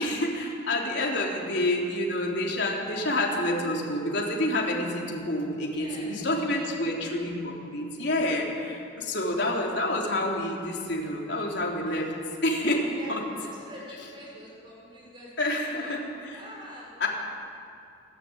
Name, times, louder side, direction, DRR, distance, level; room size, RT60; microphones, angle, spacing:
voice 1, 0.0-12.1 12.4-12.8 13.1-13.2 15.4-16.0 16.3-16.4 17.0-17.1, left 1 dB, 60° left, -2 dB, 3.8 m, -28 dB
voice 2, 5.6-7.1 11.0-11.3 11.8-12.1 12.4-16.0 16.3-17.0, equal, 25° right, -4 dB, 6.7 m, -46 dB
27.0 x 12.0 x 9.1 m, 2.4 s
head